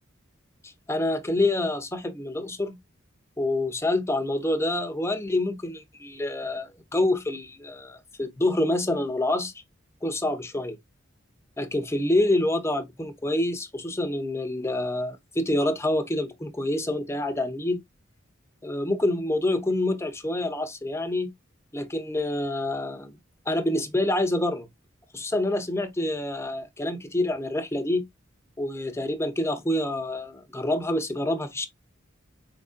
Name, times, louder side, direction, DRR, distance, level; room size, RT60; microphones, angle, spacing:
voice 1, 0.6-2.8 3.4-9.5 10.0-10.8 11.6-17.8 18.6-21.3 21.7-23.1 23.5-24.7 25.1-28.1 28.6-31.7, left 1 dB, 15° left, 0.7 m, -27 dB
4.5 x 3.7 x 2.5 m
head